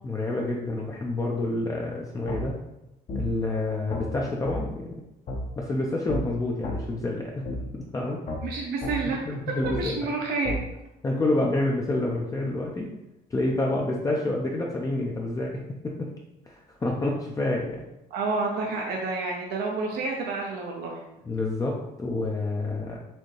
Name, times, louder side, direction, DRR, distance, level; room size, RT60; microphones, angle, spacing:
voice 1, 0.0-2.6 3.1-4.9 5.6-7.3 7.7-8.2 9.3-10.0 11.0-12.9 13.3-15.5 15.8-16.1 16.5-17.8 21.3-23.0, left 2 dB, 20° left, -2 dB, 0.5 m, -28 dB
sound 1, 2.3-2.4 3.1-3.2 3.9-4.1 4.5-4.6 5.3-5.4 6.1-6.2 6.6-6.8 7.5-7.6 8.3-8.4 8.8-9.0 9.6-9.8 10.5-10.6, left 1 dB, 50° left, 0.9 m, -31 dB
voice 2, 8.4-9.2 9.6-10.5 18.1-21.0, right 3 dB, 70° right, 0 dB, 0.7 m, -29 dB
4.3 x 2.7 x 3.2 m, 0.90 s
cardioid pair, 110°, 17 cm